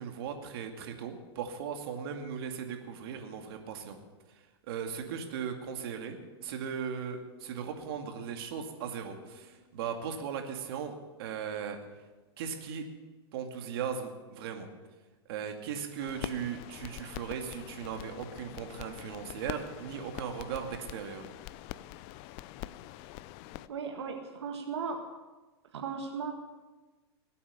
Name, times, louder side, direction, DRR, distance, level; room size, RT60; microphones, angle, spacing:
voice 1, 0.0-4.0 4.3-11.8 12.4-12.9 13.3-14.7 15.3-21.3, right 7 dB, 60° right, 4 dB, 2.3 m, -38 dB
sound 1, 5.9-11.8, equal, 30° right, 5.1 m, -64 dB
sound 2, 16.0-23.7, left 15 dB, 40° left, 0.5 m, -44 dB
voice 2, 23.7-25.0 25.7-26.3, right 5 dB, 85° right, 3 dB, 1.7 m, -36 dB
20.0 x 8.6 x 7.0 m, 1.2 s
hypercardioid pair, 125°, 14 cm